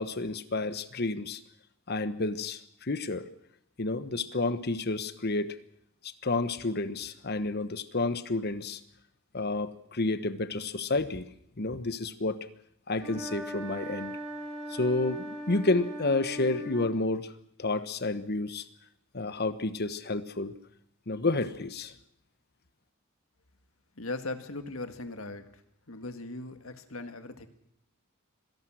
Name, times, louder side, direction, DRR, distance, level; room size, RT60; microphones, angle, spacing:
voice 1, 0.0-1.4 1.9-3.2 3.8-5.6 6.0-8.8 9.3-11.3 11.6-12.5 12.9-14.2 14.7-17.3 17.6-18.6 19.1-20.5 21.1-21.9, left 2 dB, 50° left, 12 dB, 1.2 m, -30 dB
sound 1, 12.9-16.9, equal, 15° right, 7.3 m, -39 dB
voice 2, 24.0-25.4 25.9-27.5, left 2 dB, 80° left, 8 dB, 1.9 m, -38 dB
25.5 x 17.5 x 6.3 m, 0.71 s
head